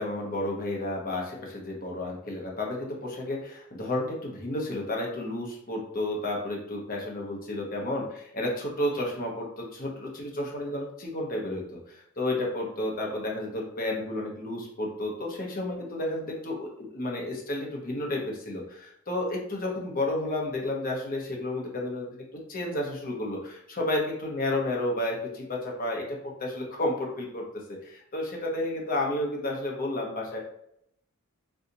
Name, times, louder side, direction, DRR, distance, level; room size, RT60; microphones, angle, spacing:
voice 1, 0.0-22.1 22.5-27.4 27.8-30.4, left 1 dB, 40° left, -1 dB, 0.8 m, -31 dB
2.7 x 2.3 x 3.9 m, 0.74 s
head